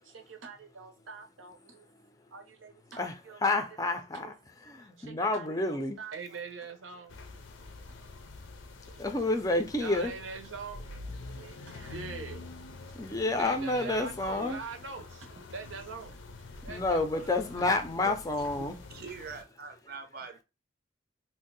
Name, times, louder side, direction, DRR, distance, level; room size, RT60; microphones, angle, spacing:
voice 1, 0.0-1.9 2.3-3.4 3.8-4.3 4.8-7.2 7.6-7.9 8.8-9.1 9.8-12.5 13.4-17.3 17.6-17.7, right 4 dB, 90° right, 0.7 m, -44 dB
voice 2, 3.0-4.3 4.7-6.0 9.0-10.1 12.9-14.6 16.7-18.8, left 2 dB, 20° left, 0.4 m, -29 dB
sound 1, 7.1-19.4, left 3 dB, 85° left, 0.5 m, -46 dB
voice 3, 18.9-20.4, right 5 dB, 50° right, 0.5 m, -43 dB
2.6 x 2.1 x 3.9 m
head